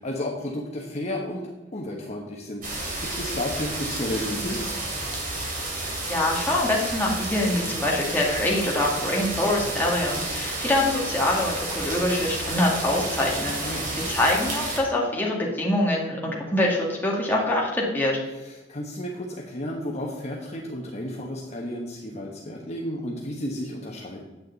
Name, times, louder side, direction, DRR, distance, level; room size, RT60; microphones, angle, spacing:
voice 1, 0.0-4.6 13.6-13.9 18.4-24.2, left 1 dB, 35° left, -1 dB, 1.1 m, -32 dB
sound 1, 2.6-14.8, right 2 dB, 50° right, 2.6 m, -31 dB
voice 2, 6.1-18.2, left 1 dB, 10° left, -3 dB, 2.1 m, -24 dB
9.5 x 8.1 x 4.0 m, 1.1 s
head